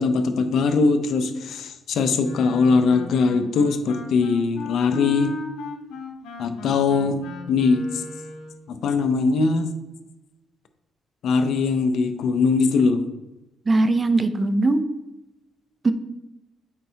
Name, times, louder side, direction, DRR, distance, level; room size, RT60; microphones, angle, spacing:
voice 1, 0.0-5.3 6.4-7.2 7.5-8.0 8.7-9.7 11.2-13.1, left 4 dB, 70° left, 9 dB, 0.6 m, -21 dB
Wind instrument woodwind instrument, 2.2-8.6, left 2 dB, 90° left, 0.9 m, -37 dB
voice 2, 13.7-14.8 15.8-15.9, right 2 dB, 30° right, 10 dB, 0.5 m, -20 dB
8.6 x 4.4 x 2.8 m, 1.0 s
cardioid pair, 90°, 0 cm